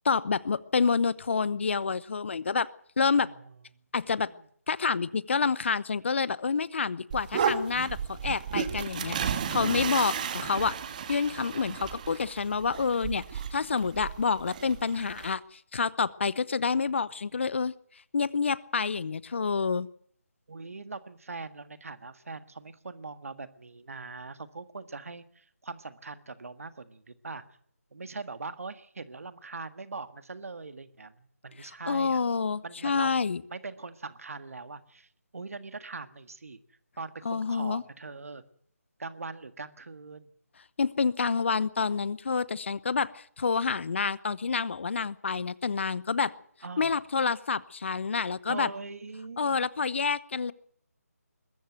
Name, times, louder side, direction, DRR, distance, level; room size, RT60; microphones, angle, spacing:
voice 1, 0.0-2.7 3.0-3.3 3.9-4.3 4.7-10.8 11.1-17.7 18.1-19.9 31.6-33.4 37.2-37.8 40.8-46.3 46.8-48.7 49.4-50.5, left 5 dB, 50° left, 21 dB, 0.8 m, -28 dB
voice 2, 3.1-3.6 4.2-4.4 16.9-17.0 20.5-27.4 27.9-32.2 32.6-33.2 33.5-36.6 37.0-38.4 39.0-40.3 46.6-46.9 48.5-49.6, right 4 dB, 60° right, 12 dB, 1.7 m, -41 dB
sound 1, 7.1-15.4, right 7 dB, 30° right, 1.5 m, -33 dB
21.5 x 14.0 x 9.2 m, 0.63 s
figure-of-eight pair, 155°, 9 cm